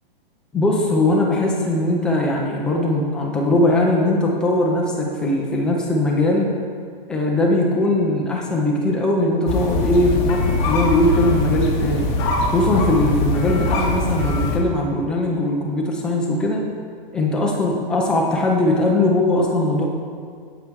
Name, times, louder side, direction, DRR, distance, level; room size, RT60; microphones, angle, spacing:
voice 1, 0.5-6.5 7.1-12.1 12.5-16.7 17.1-19.9, left 1 dB, 5° left, -2 dB, 0.5 m, -20 dB
sound 1, 9.5-14.6, left 2 dB, 20° left, 1.0 m, -22 dB
8.6 x 7.8 x 4.7 m, 2.1 s
hypercardioid pair, 165°, 30 cm